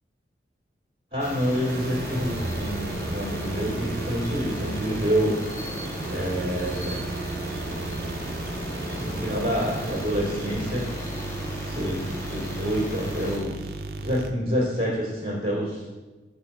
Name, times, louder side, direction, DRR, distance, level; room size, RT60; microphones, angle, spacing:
voice 1, 1.1-5.4 6.1-7.0 8.8-10.9 11.6-15.9, equal, 25° right, -8 dB, 2.1 m, -28 dB
sound 1, 1.2-13.4, left 1 dB, 15° left, 1.1 m, -36 dB
sound 2, 1.7-14.3, right 2 dB, 55° right, 0.5 m, -34 dB
5.4 x 4.3 x 5.7 m, 1.2 s
head